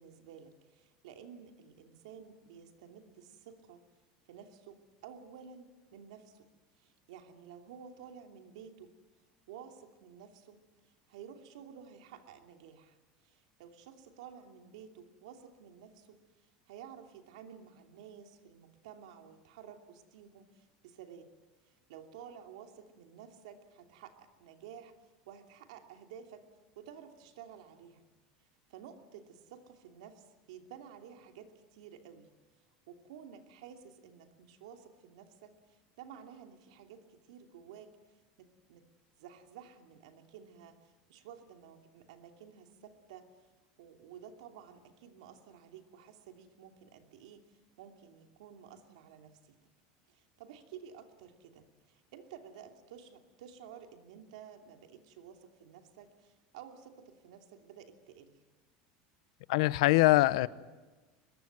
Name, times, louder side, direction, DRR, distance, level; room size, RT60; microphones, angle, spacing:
voice 1, 0.0-3.8 4.3-6.5 6.8-8.9 9.5-13.0 13.2-16.2 16.7-21.3 21.6-24.9 25.3-26.5 26.7-28.0 28.4-32.3 32.9-38.0 38.4-38.9 39.2-43.3 43.8-49.6 50.1-58.4, right 8 dB, 85° right, 2.9 m, -52 dB
voice 2, 59.5-60.5, left 19 dB, 80° left, 0.8 m, -23 dB
24.0 x 21.5 x 9.4 m
supercardioid pair, 135°, 3 cm